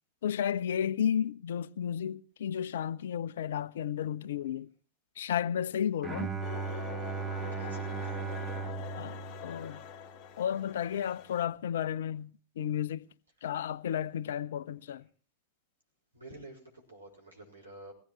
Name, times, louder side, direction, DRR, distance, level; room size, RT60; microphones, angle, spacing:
voice 1, 0.2-4.7 5.2-6.3 9.0-9.8 10.4-13.1 13.4-15.1, left 9 dB, 60° left, 0.6 m, -33 dB
Bowed string instrument, 6.0-10.2, right 6 dB, 20° right, 1.6 m, -37 dB
sound 1, 6.4-11.5, left 10 dB, 40° left, 1.1 m, -44 dB
voice 2, 7.5-8.4 16.1-17.9, right 2 dB, 80° right, 6.3 m, -50 dB
22.0 x 17.0 x 3.1 m
figure-of-eight pair, 90°, 0 cm